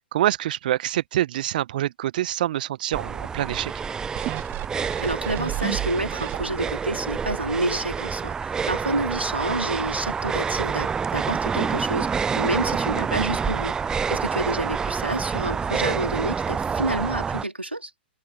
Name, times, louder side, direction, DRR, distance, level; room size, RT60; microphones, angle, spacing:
voice 1, 0.1-3.7 8.6-8.7 12.6-12.7, right 13 dB, 50° right, 1.4 m, -26 dB
sound 1, 2.9-17.4, right 6 dB, 10° right, 0.5 m, -28 dB
sound 2, 4.1-6.8 7.3-7.4, right 19 dB, 30° right, 1.2 m, -32 dB
voice 2, 5.0-17.9, right 2 dB, 90° right, 2.9 m, -29 dB
figure-of-eight pair, 115°, 6 cm